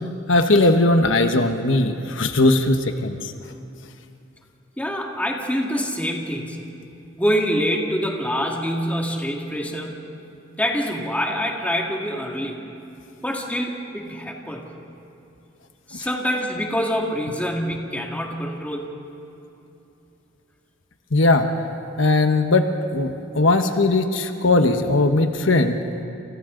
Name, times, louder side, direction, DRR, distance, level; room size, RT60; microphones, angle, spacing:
voice 1, 0.3-3.3 15.9-16.1 21.1-21.5 22.0-25.8, left 2 dB, 75° left, 6 dB, 1.2 m, -19 dB
voice 2, 4.8-6.6 7.2-10.0 10.6-12.6 13.2-14.7 15.9-18.9, equal, 10° left, 0 dB, 2.2 m, -25 dB
29.0 x 28.0 x 3.9 m, 2.8 s
head